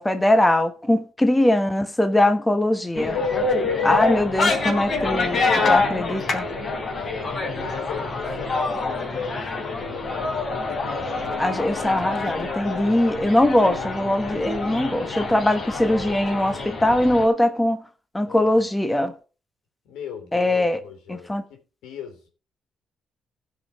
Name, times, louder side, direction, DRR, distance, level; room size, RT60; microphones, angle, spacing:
voice 1, 0.0-3.2 3.8-6.5 11.0-17.8 18.1-19.1 20.3-20.8 21.1-21.4, left 1 dB, 10° left, 1.2 m, -21 dB
sound 1, 2.9-17.3, left 3 dB, 45° left, 3.6 m, -26 dB
voice 2, 4.0-4.7 5.9-7.0 7.3-10.6 18.3-18.6 19.8-22.3, left 7 dB, 90° left, 3.2 m, -39 dB
15.5 x 5.5 x 4.8 m
cardioid pair, 90°, 0 cm